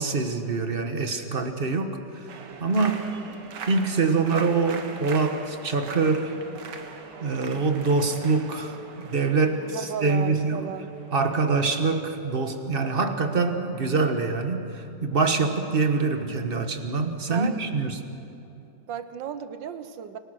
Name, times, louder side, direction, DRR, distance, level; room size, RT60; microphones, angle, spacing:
voice 1, 0.0-1.9 2.6-3.1 3.7-6.4 7.2-10.7 11.1-18.0, right 4 dB, 35° right, 6 dB, 1.4 m, -25 dB
sound 1, 2.3-12.0, right 5 dB, 70° right, 1.9 m, -42 dB
voice 2, 2.9-3.4 9.6-10.9 17.2-17.6 18.9-20.2, right 8 dB, 85° right, 11 dB, 1.6 m, -35 dB
28.5 x 18.0 x 6.4 m, 2.8 s
omnidirectional pair, 1.9 m